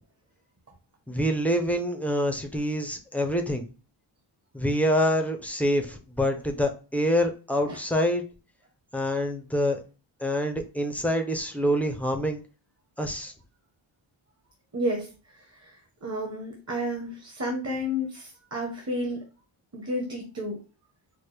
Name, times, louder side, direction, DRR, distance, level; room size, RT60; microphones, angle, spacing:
voice 1, 1.1-3.7 4.5-8.2 8.9-9.8 10.2-12.4 13.0-13.3, equal, 5° left, 4 dB, 0.4 m, -26 dB
voice 2, 14.7-19.2 19.7-20.6, equal, 30° right, 0 dB, 0.9 m, -32 dB
4.5 x 2.1 x 3.2 m, 0.32 s
wide cardioid pair, 140°, 48 cm